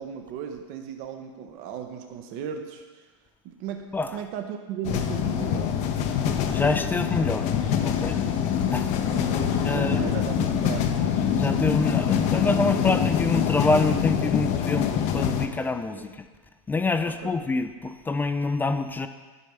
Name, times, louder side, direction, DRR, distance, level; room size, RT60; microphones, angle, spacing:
voice 1, 0.0-3.0 3.4-5.8 9.1-11.5 15.9-16.0 17.0-17.4, right 8 dB, 50° right, 5 dB, 0.8 m, -36 dB
sound 1, 4.8-15.5, left 8 dB, 45° left, 0.7 m, -25 dB
voice 2, 6.5-7.5 7.8-8.2 8.7-8.9 9.6-10.1 11.3-16.1 16.7-19.1, left 3 dB, 10° left, 9 dB, 0.3 m, -26 dB
11.0 x 5.3 x 3.4 m, 1.3 s
hypercardioid pair, 120°, 16 cm